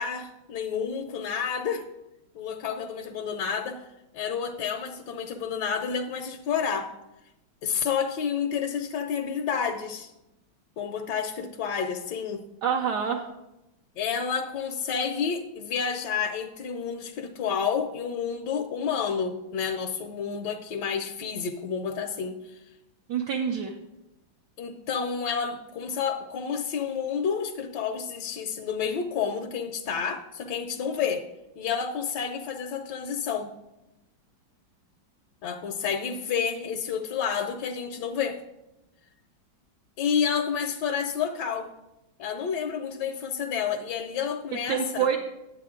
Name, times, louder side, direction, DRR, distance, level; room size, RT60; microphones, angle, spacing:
voice 1, 0.0-1.9 2.3-3.8 4.1-6.9 7.6-10.1 10.8-12.4 14.0-22.5 24.6-31.2 31.6-33.5 35.4-38.4 40.0-41.7 42.2-45.1, left 6 dB, 70° left, 4 dB, 1.1 m, -30 dB
voice 2, 12.6-13.2 23.1-23.7 44.7-45.2, right 7 dB, 70° right, 2 dB, 1.2 m, -26 dB
10.5 x 8.2 x 3.7 m, 0.94 s
omnidirectional pair, 2.2 m